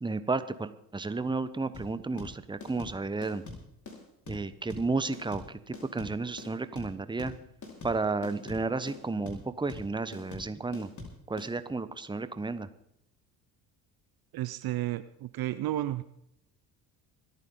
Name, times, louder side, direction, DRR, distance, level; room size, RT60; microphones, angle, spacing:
voice 1, 0.0-3.4 4.3-7.3 7.8-10.9 11.3-12.7, right 3 dB, 10° right, 13 dB, 1.0 m, -32 dB
sound 1, 1.7-11.5, left 3 dB, 40° left, 4.7 m, -43 dB
voice 2, 14.3-16.0, right 14 dB, 50° right, 14 dB, 0.7 m, -32 dB
26.0 x 9.3 x 3.9 m, 0.77 s
hypercardioid pair, 55°, 47 cm